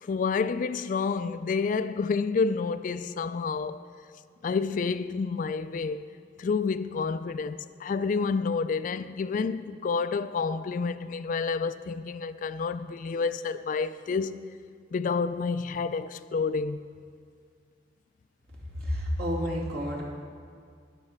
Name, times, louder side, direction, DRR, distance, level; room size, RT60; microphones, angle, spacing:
voice 1, 0.0-3.9 4.4-6.0 6.4-14.4 14.9-16.8, left 5 dB, 50° left, 0.3 m, -29 dB
voice 2, 18.7-20.0, equal, 60° right, 2.6 m, -30 dB
19.5 x 6.8 x 4.3 m
head